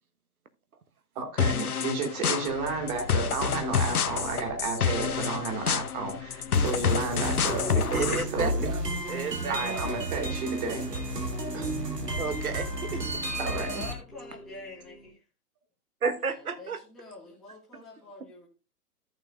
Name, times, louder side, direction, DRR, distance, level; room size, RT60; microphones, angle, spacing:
voice 1, 1.1-8.6 9.5-10.9 11.5-11.7 13.4-13.8, right 4 dB, 25° right, 2.6 m, -32 dB
sound 1, 1.4-8.2, left 7 dB, 65° left, 0.9 m, -28 dB
sound 2, 2.4-15.1, left 2 dB, 90° left, 2.2 m, -41 dB
sound 3, 6.5-13.9, right 2 dB, 80° right, 1.8 m, -33 dB
voice 2, 7.9-8.7 9.1-9.6 12.2-13.3 16.0-16.8, right 5 dB, 65° right, 1.3 m, -32 dB
voice 3, 13.4-15.2 16.3-18.5, left 2 dB, ahead, 0.7 m, -46 dB
14.0 x 6.7 x 2.4 m
figure-of-eight pair, 125°, 48 cm